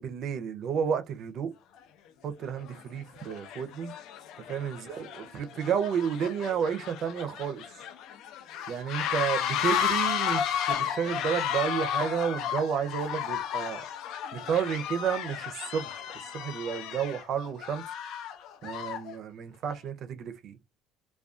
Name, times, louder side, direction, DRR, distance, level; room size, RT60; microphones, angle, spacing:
voice 1, 0.0-1.5 2.2-3.9 4.5-7.6 8.7-13.8 14.3-17.8 18.6-20.6, right 7 dB, 55° right, 0.5 m, -31 dB
sound 1, 1.8-1.9 2.6-2.8 3.2-19.1, left 9 dB, 70° left, 0.3 m, -33 dB
2.3 x 2.2 x 2.4 m
cardioid pair, 130°, 0 cm